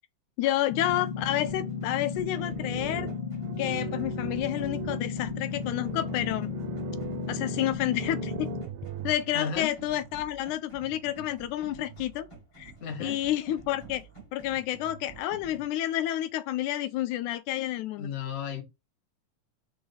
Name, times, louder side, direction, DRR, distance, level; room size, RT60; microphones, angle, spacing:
voice 1, 0.4-3.1 3.6-6.5 7.3-8.5 9.0-12.3 12.6-12.7 13.0-14.1 14.3-18.1, left 13 dB, 80° left, 2.0 m, -30 dB
sound 1, 0.7-8.6, left 6 dB, 50° left, 2.1 m, -34 dB
sound 2, 0.9-15.7, right 4 dB, 10° left, 2.1 m, -49 dB
sound 3, 1.3-9.2, right 14 dB, 80° right, 1.8 m, -41 dB
voice 2, 9.3-9.7 12.8-13.2 18.0-18.6, left 6 dB, 30° left, 1.3 m, -34 dB
5.4 x 4.6 x 5.2 m
omnidirectional pair, 3.5 m